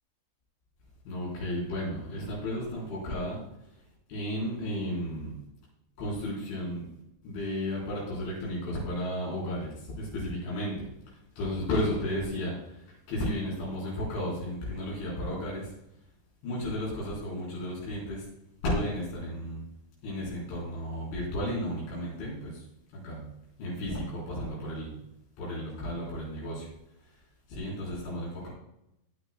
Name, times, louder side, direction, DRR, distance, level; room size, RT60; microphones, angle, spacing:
voice 1, 1.0-3.4 4.1-5.3 6.0-6.9 7.2-10.9 11.4-15.7 16.4-18.3 18.6-19.7 20.0-22.6 22.9-23.3 23.6-25.0 25.4-26.7 27.5-28.5, left 1 dB, 80° left, -6 dB, 6.7 m, -33 dB
17.5 x 9.8 x 2.3 m, 0.81 s
omnidirectional pair, 5.3 m